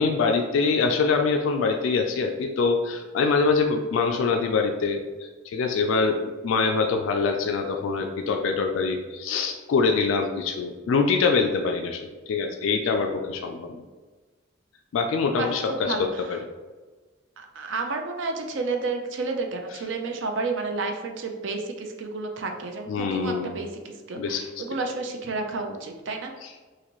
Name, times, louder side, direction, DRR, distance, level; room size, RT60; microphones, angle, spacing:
voice 1, 0.0-13.8 14.9-16.4 22.9-23.5 24.2-24.4 26.4-26.6, left 4 dB, 80° left, 4 dB, 0.3 m, -24 dB
voice 2, 15.3-16.4 17.4-26.3, right 3 dB, 70° right, 3 dB, 0.5 m, -31 dB
3.9 x 2.5 x 3.0 m, 1.3 s
head